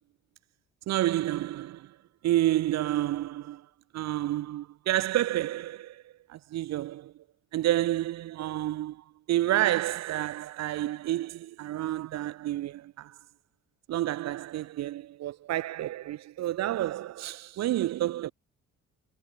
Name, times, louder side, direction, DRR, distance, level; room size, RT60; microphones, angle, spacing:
voice 1, 0.9-1.9 2.2-3.7 3.9-6.0 6.3-7.1 7.5-13.1 13.9-18.3, right 14 dB, 45° right, 0.5 m, -29 dB
hypercardioid pair, 50°, 38 cm